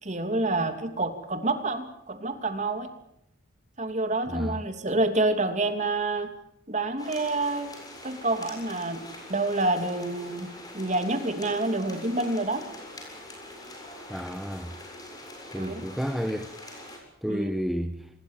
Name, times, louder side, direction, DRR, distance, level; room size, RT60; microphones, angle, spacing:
voice 1, 0.0-2.9 3.8-6.3 6.7-7.7 8.0-10.5 10.7-12.6 15.5-15.8 17.3-17.5, right 2 dB, 35° right, 2.9 m, -28 dB
voice 2, 4.3-4.6 14.1-14.7 15.5-16.5 17.2-18.1, equal, ahead, 1.2 m, -31 dB
sound 1, 7.0-17.0, left 1 dB, 20° left, 7.4 m, -44 dB
27.0 x 21.5 x 7.5 m
head